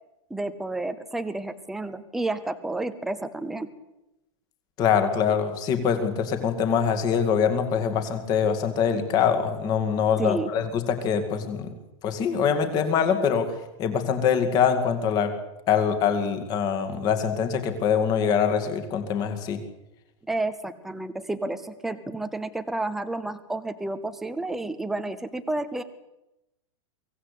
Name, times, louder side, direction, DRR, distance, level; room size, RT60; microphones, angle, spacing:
voice 1, 0.3-3.7 10.2-10.5 20.3-25.8, right 2 dB, ahead, 10 dB, 0.7 m, -31 dB
voice 2, 4.8-11.7 12.0-13.5 13.8-15.3 15.7-19.6, left 7 dB, 25° left, 8 dB, 2.2 m, -24 dB
23.5 x 17.0 x 8.4 m, 0.93 s
supercardioid pair, 175°, 17 cm